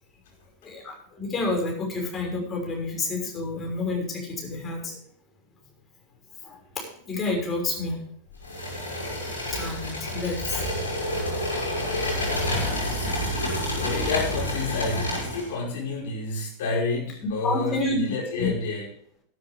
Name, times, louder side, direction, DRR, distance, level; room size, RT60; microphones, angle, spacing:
voice 1, 0.6-5.0 6.4-8.0 9.5-10.6 12.5-12.7 13.0-13.2 17.4-18.0 18.4-18.5, left 3 dB, 25° left, 0 dB, 6.1 m, -29 dB
sound 1, 8.4-15.5, left 1 dB, 75° left, 5.2 m, -29 dB
voice 2, 13.8-18.9, left 3 dB, 55° left, -1 dB, 4.9 m, -29 dB
14.0 x 12.0 x 3.6 m, 0.62 s
figure-of-eight pair, 90°, 0 cm